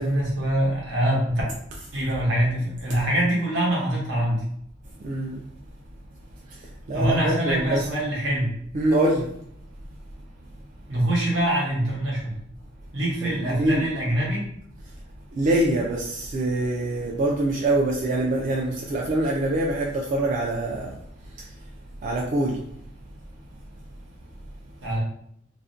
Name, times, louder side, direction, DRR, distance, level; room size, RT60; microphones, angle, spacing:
voice 1, 0.0-1.4 1.9-4.4 6.9-8.5 10.9-12.4 12.9-14.4 24.8-25.0, right 1 dB, 70° right, -4 dB, 0.9 m, -24 dB
voice 2, 5.0-5.5 6.5-7.9 8.7-9.4 13.2-13.9 14.9-15.0 15.3-21.0 21.3-21.7 22.0-22.6, right 1 dB, 40° right, -2 dB, 0.3 m, -25 dB
2.5 x 2.0 x 2.5 m, 0.72 s
head